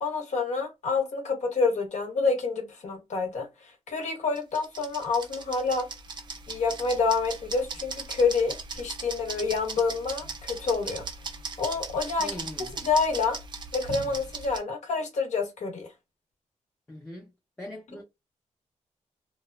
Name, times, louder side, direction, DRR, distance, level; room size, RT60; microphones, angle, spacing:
voice 1, 0.0-3.5 3.9-5.9 6.5-11.0 11.6-12.4 12.8-13.4 13.7-15.9, left 4 dB, 70° left, 0.9 m, -27 dB
sound 1, 4.4-14.6, right 4 dB, 40° right, 0.4 m, -38 dB
voice 2, 12.2-12.7 16.9-17.3 17.6-18.0, left 1 dB, 10° left, 0.5 m, -41 dB
2.8 x 2.1 x 2.3 m
wide cardioid pair, 145°, 12 cm